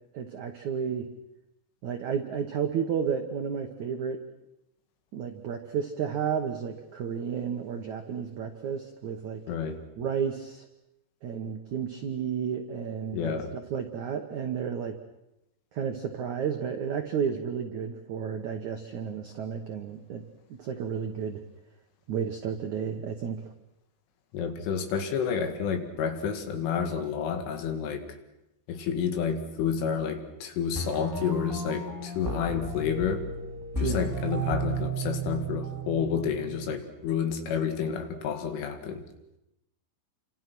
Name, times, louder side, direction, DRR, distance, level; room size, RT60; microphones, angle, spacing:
voice 1, 0.1-1.1 1.8-4.2 5.1-9.4 10.0-10.6 11.2-13.3 13.7-14.9 15.7-20.2 20.5-21.4 22.1-23.5 33.8-34.1, right 7 dB, 75° right, 5 dB, 1.7 m, -32 dB
voice 2, 9.5-9.8 13.1-13.5 24.3-28.1 28.7-33.3 33.8-39.0, left 7 dB, 85° left, 7 dB, 4.7 m, -30 dB
sound 1, 30.7-36.8, right 2 dB, 5° right, 1.8 m, -33 dB
29.0 x 26.0 x 6.2 m, 0.88 s
omnidirectional pair, 5.5 m